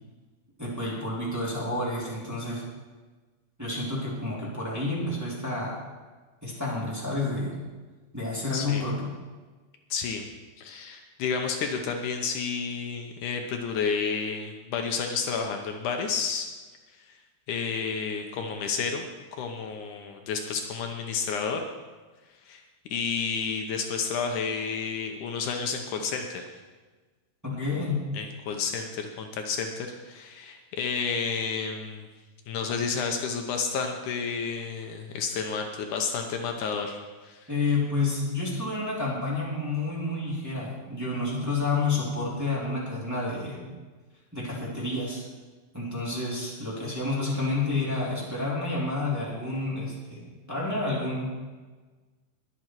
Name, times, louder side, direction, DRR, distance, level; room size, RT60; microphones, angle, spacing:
voice 1, 0.6-2.7 3.6-5.8 6.4-7.6 8.1-9.1 27.4-28.0 37.5-43.7 44.3-45.3 45.7-51.3, left 3 dB, 5° right, -5 dB, 2.7 m, -29 dB
voice 2, 8.5-8.8 9.9-10.2 10.6-16.5 17.5-19.1 19.3-21.6 22.5-22.6 22.9-26.4 28.1-32.1 32.5-37.5, left 5 dB, 75° left, 4 dB, 2.3 m, -31 dB
21.0 x 7.8 x 4.6 m, 1.3 s
omnidirectional pair, 3.8 m